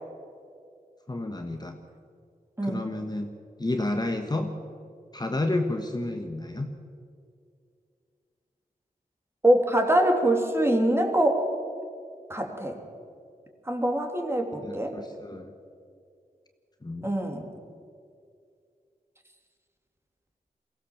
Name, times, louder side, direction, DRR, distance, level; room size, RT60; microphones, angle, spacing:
voice 1, 1.1-1.8 2.6-3.3 3.6-4.5 5.1-6.7 14.6-15.5 16.8-17.1, left 2 dB, 25° left, 5 dB, 1.5 m, -30 dB
voice 2, 9.4-11.4 12.3-12.8 13.7-14.9 17.0-17.5, right 1 dB, 15° right, 3 dB, 3.0 m, -24 dB
22.5 x 16.5 x 7.3 m, 2.3 s
wide cardioid pair, 75°, 15 cm